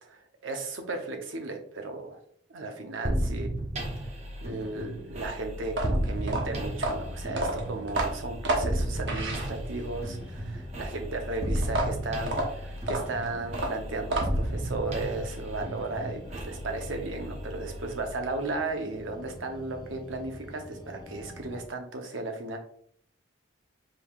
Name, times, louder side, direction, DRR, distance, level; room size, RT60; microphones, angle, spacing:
voice 1, 0.0-2.2 2.5-3.5 4.4-22.6, right 2 dB, 80° right, 4 dB, 0.8 m, -35 dB
sound 1, 3.0-18.7, equal, 35° right, 0.7 m, -34 dB
sound 2, 5.6-9.9 11.6-14.6, right 2 dB, 60° right, 1.0 m, -30 dB
sound 3, 6.1-21.7, left 1 dB, 20° left, 0.5 m, -45 dB
4.9 x 3.6 x 2.4 m, 0.64 s
head